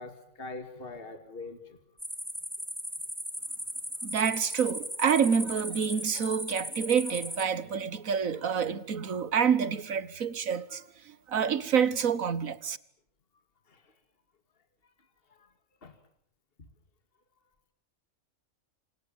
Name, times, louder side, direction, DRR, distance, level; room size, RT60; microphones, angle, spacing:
voice 1, 0.0-1.8 13.7-13.9 15.3-15.5 15.8-16.0 16.6-16.7, left 3 dB, 40° left, 2.4 m, -43 dB
sound 1, 2.0-7.4, equal, ahead, 2.0 m, -37 dB
voice 2, 4.0-12.8, right 7 dB, 70° right, 1.8 m, -28 dB
29.5 x 27.0 x 7.3 m
omnidirectional pair, 1.5 m